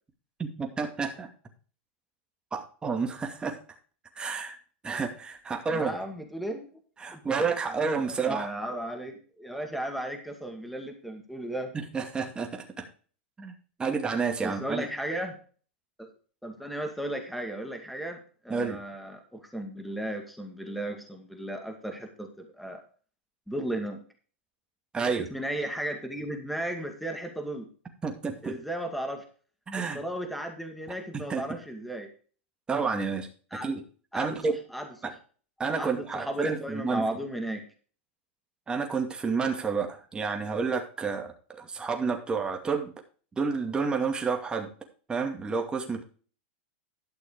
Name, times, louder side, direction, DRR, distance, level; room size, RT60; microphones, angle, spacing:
voice 1, 0.4-1.3 2.5-3.6 4.2-4.6 4.8-5.9 7.0-8.5 11.7-12.9 13.4-14.8 18.5-18.8 24.9-25.3 28.0-28.5 29.7-30.0 31.1-31.4 32.7-33.3 33.6-33.8 34.1-34.5 35.0-35.1 35.6-37.1 38.7-42.9 43.4-44.7 45.1-46.0, right 5 dB, 15° right, 3 dB, 2.3 m, -30 dB
voice 2, 5.7-6.8 7.1-7.3 8.1-11.7 14.4-15.3 16.0-16.1 16.4-22.8 23.5-24.0 25.3-27.7 28.4-29.2 29.8-32.1 33.5-33.7 34.1-34.9 35.8-37.7, right 1 dB, ahead, 4 dB, 2.2 m, -35 dB
12.0 x 6.3 x 4.7 m, 0.39 s
hypercardioid pair, 130°, 6 cm